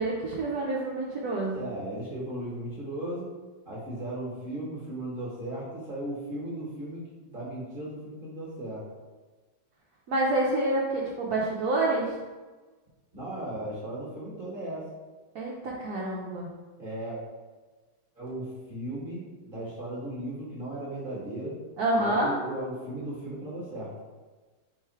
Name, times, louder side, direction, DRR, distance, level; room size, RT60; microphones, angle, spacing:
voice 1, 0.0-1.6 10.1-12.1 15.3-16.5 21.8-22.3, right 2 dB, 70° right, -4 dB, 1.1 m, -27 dB
voice 2, 1.5-3.3 3.6-7.0 7.3-8.8 13.1-14.9 16.8-17.2 18.2-21.6 22.0-23.9, right 1 dB, 35° right, -5 dB, 1.2 m, -36 dB
3.4 x 3.2 x 4.4 m, 1.3 s
omnidirectional pair, 1.9 m